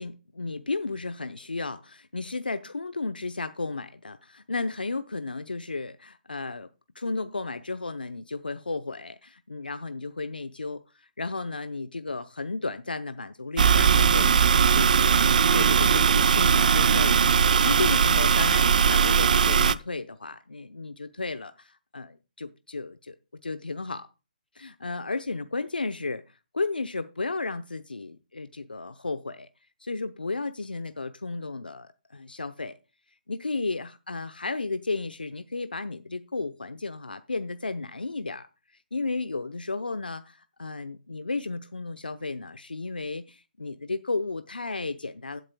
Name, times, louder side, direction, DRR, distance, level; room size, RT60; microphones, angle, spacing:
voice 1, 0.0-6.7 6.9-15.1 15.5-23.1 23.4-24.1 24.5-29.5 29.8-32.8 33.3-38.5 38.9-45.4, left 3 dB, 90° left, 0.7 m, -33 dB
sound 1, 13.6-19.7, right 6 dB, 60° right, 0.5 m, -20 dB
16.0 x 8.2 x 2.2 m
figure-of-eight pair, 140°, 5 cm